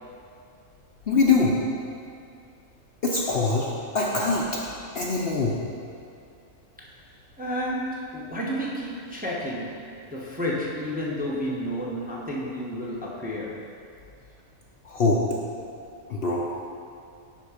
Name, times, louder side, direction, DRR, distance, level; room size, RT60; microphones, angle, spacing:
voice 1, 1.1-1.5 3.0-4.4 4.9-5.6 14.8-15.2 16.1-16.5, left 3 dB, 55° left, -3 dB, 0.8 m, -23 dB
voice 2, 7.4-9.8 10.1-13.6, equal, 10° right, -5 dB, 0.8 m, -31 dB
10.0 x 3.8 x 4.9 m, 2.4 s
omnidirectional pair, 1.5 m